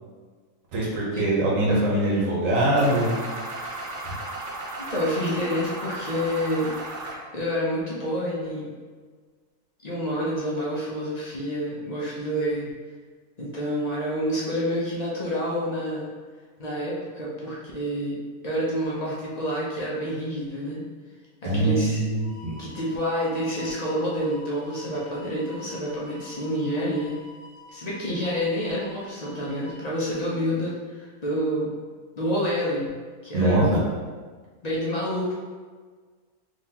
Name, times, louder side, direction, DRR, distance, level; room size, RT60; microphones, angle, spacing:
voice 1, 0.7-3.1 21.4-22.6 33.3-33.8, right 1 dB, 60° right, -5 dB, 1.2 m, -22 dB
sound 1, 2.8-7.2, right 2 dB, 85° right, 1.2 m, -35 dB
voice 2, 4.9-6.7 7.3-8.7 9.8-12.7 13.4-16.1 16.6-18.2 18.4-20.8 21.4-22.0 22.6-27.2 27.7-31.8 32.2-32.9 33.2-33.8 34.6-35.3, equal, 50° left, -6 dB, 0.5 m, -28 dB
sound 2, 22.2-29.8, left 3 dB, 70° left, 1.2 m, -47 dB
3.7 x 3.0 x 2.8 m, 1.5 s
omnidirectional pair, 1.6 m